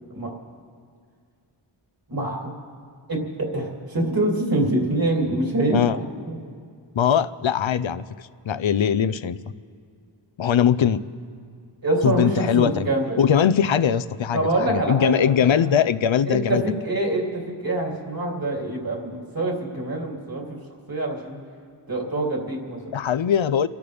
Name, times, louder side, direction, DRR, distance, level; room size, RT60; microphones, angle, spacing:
voice 1, 2.1-2.5 3.1-6.4 11.8-13.2 14.3-15.8 16.2-20.6 20.9-21.4 21.9-22.8, right 1 dB, 45° right, -2 dB, 3.1 m, -25 dB
voice 2, 6.9-8.0 8.4-9.4 10.4-11.0 12.0-12.9 13.2-16.6 22.9-23.7, left 8 dB, 70° left, 14 dB, 0.6 m, -21 dB
29.0 x 13.5 x 3.5 m, 2.2 s
wide cardioid pair, 45°, 48 cm